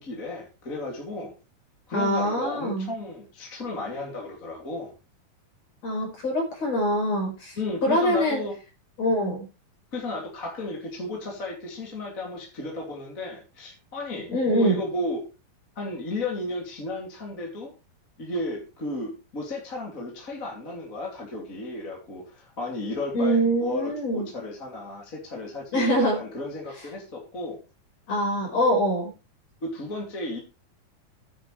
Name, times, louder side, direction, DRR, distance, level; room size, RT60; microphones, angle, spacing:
voice 1, 0.0-1.3 1.9-4.9 7.6-8.6 9.9-15.2 15.7-17.7 18.2-27.6 29.6-30.4, left 2 dB, 25° left, -1 dB, 2.9 m, -34 dB
voice 2, 1.9-2.9 5.8-8.4 9.0-9.5 14.3-14.8 23.1-24.3 25.7-26.2 28.1-29.1, equal, 45° left, 1 dB, 5.7 m, -24 dB
12.5 x 10.0 x 3.4 m, 0.30 s
omnidirectional pair, 4.4 m